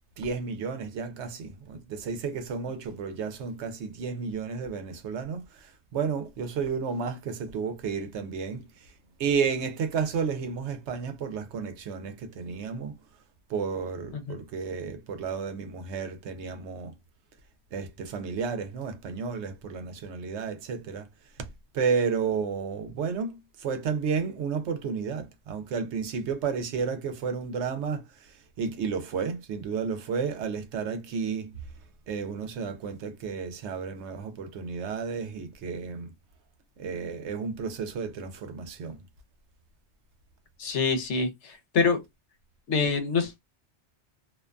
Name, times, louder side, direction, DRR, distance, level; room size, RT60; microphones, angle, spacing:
voice 1, 0.2-8.9 9.2-12.9 13.5-16.9 17.7-21.1 21.4-21.5 21.7-31.5 32.1-36.1 36.8-39.0, right 5 dB, 80° right, 0.9 m, -32 dB
voice 2, 40.6-42.0 42.7-43.4, left 4 dB, 75° left, 1.0 m, -26 dB
2.5 x 2.2 x 2.4 m
omnidirectional pair, 1.2 m